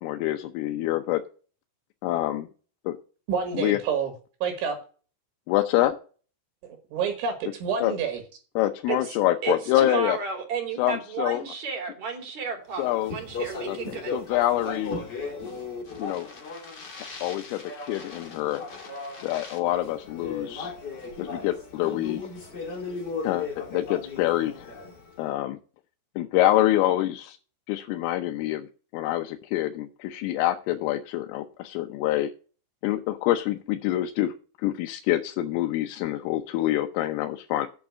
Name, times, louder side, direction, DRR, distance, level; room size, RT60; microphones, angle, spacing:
voice 1, 0.0-1.2 2.0-2.5 2.9-3.0 3.6-3.8 5.5-6.0 7.8-7.9 8.6-10.2 10.8-11.4 12.8-13.2 13.7-15.0 16.0-16.3 17.0-18.6 19.2-20.7 21.2-22.3 23.2-24.7 25.2-25.6 26.2-27.4 27.7-28.7 28.9-32.3 32.8-37.7, left 14 dB, 85° left, 5 dB, 3.4 m, -26 dB
voice 2, 3.3-4.1 4.4-4.8 6.6-8.2, right 6 dB, 70° right, 5 dB, 4.0 m, -28 dB
voice 3, 9.4-14.1, right 6 dB, 40° right, 3 dB, 3.3 m, -32 dB
Speech, 12.8-25.2, left 4 dB, 30° left, 2.0 m, -36 dB
8.9 x 5.9 x 8.3 m, 0.37 s
omnidirectional pair, 5.8 m